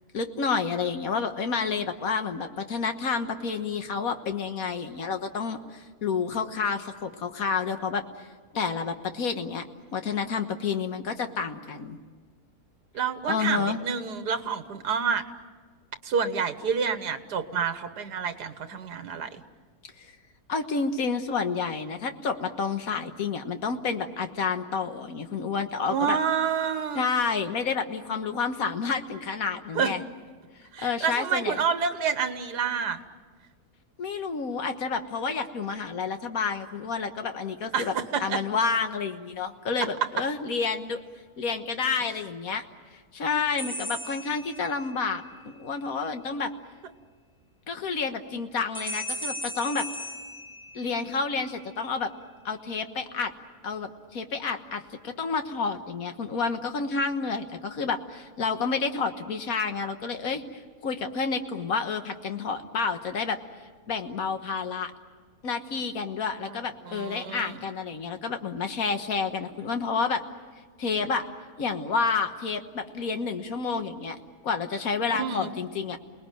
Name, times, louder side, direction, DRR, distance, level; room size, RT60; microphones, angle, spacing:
voice 1, 0.1-8.3 8.5-9.6 9.9-12.0 13.3-13.8 20.0-20.1 20.5-26.2 26.9-30.0 30.8-31.6 34.0-37.9 38.2-41.0 41.4-42.6 43.1-46.5 47.7-49.9 50.7-52.1 52.4-53.3 53.6-63.4 63.9-64.9 65.4-70.2 70.8-71.3 71.6-74.2 74.4-76.0, left 5 dB, 65° left, 7 dB, 1.7 m, -29 dB
voice 2, 12.9-15.2 16.0-19.4 25.9-27.0 29.7-29.9 30.7-33.0 37.7-38.4 42.0-42.1 66.5-66.6 66.9-67.6 75.2-75.5, right 6 dB, 85° right, 10 dB, 1.8 m, -28 dB
sound 1, 43.6-45.1 48.7-51.3, equal, 5° left, 6.8 m, -37 dB
29.0 x 19.5 x 9.2 m, 1.5 s
omnidirectional pair, 1.7 m